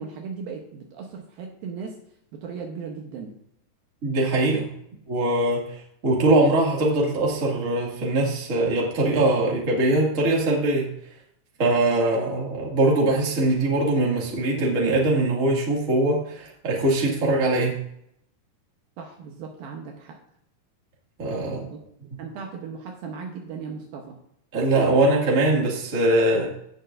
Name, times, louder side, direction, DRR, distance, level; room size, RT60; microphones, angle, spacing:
voice 1, 0.0-2.0 2.3-3.3 19.0-20.2 21.7-21.8 22.2-24.2, right 5 dB, 75° right, 1 dB, 2.5 m, -37 dB
voice 2, 4.0-4.7 5.1-5.6 6.0-10.9 11.6-17.8 21.2-21.7 24.5-26.5, right 2 dB, 30° right, -3 dB, 1.6 m, -22 dB
16.5 x 6.5 x 2.6 m, 0.71 s
omnidirectional pair, 4.8 m